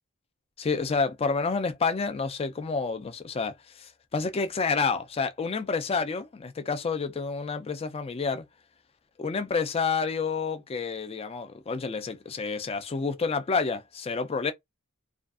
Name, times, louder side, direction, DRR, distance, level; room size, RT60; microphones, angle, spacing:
voice 1, 0.6-8.4 9.2-14.5, left 4 dB, 25° left, 0.3 m, -29 dB
2.5 x 2.3 x 2.3 m
head